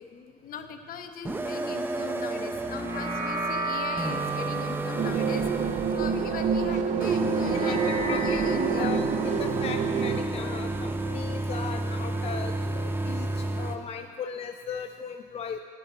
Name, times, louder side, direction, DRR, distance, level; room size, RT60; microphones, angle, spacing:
voice 1, 0.0-9.0, left 6 dB, 60° left, 6 dB, 1.0 m, -39 dB
sound 1, 1.2-13.8, right 2 dB, 15° right, 0.7 m, -32 dB
sound 2, 2.5-11.2, right 2 dB, 85° right, 2.4 m, -35 dB
sound 3, 5.0-10.2, right 6 dB, 45° right, 0.6 m, -27 dB
voice 2, 7.5-8.4 8.7-15.6, left 6 dB, 35° left, 7 dB, 0.5 m, -37 dB
9.2 x 8.8 x 8.0 m, 2.2 s
cardioid pair, 110°, 17 cm